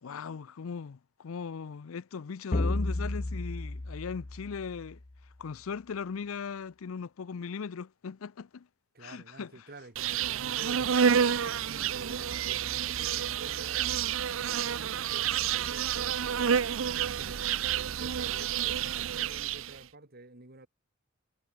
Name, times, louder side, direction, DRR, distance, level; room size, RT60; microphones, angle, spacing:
voice 1, 0.0-5.0 5.4-8.7 9.0-9.5 11.2-11.5, left 6 dB, 90° left, 0.5 m, -39 dB
sound 1, 2.5-5.1, left 2 dB, 40° left, 0.9 m, -32 dB
voice 2, 8.9-11.3 11.7-17.5 17.7-20.7, right 2 dB, 50° right, 3.0 m, -49 dB
Insect, 10.0-19.8, right 8 dB, 70° right, 0.6 m, -29 dB
head